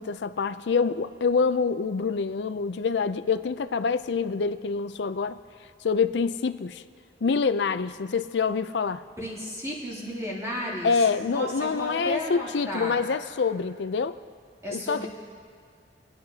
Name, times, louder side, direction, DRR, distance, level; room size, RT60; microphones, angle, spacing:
voice 1, 0.0-5.4 5.8-6.8 7.2-9.0 10.8-14.2 14.7-15.1, left 5 dB, 80° left, 12 dB, 0.5 m, -26 dB
voice 2, 9.2-13.0 14.6-15.1, left 1 dB, 15° right, -6 dB, 2.7 m, -33 dB
27.0 x 9.6 x 2.8 m, 2.1 s
head